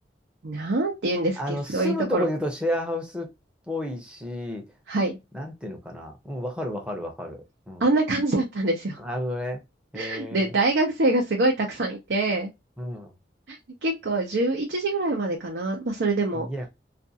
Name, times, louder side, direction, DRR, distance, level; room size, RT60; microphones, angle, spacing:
voice 1, 0.4-2.3 4.9-5.2 7.8-9.0 9.9-12.5 13.5-13.6 13.8-16.5, right 2 dB, 80° right, 0.6 m, -25 dB
voice 2, 1.4-3.3 3.7-4.7 5.3-7.8 9.0-9.6 9.9-10.5 12.8-13.1 16.3-16.7, left 1 dB, 5° right, 0.6 m, -31 dB
2.5 x 2.3 x 2.6 m
head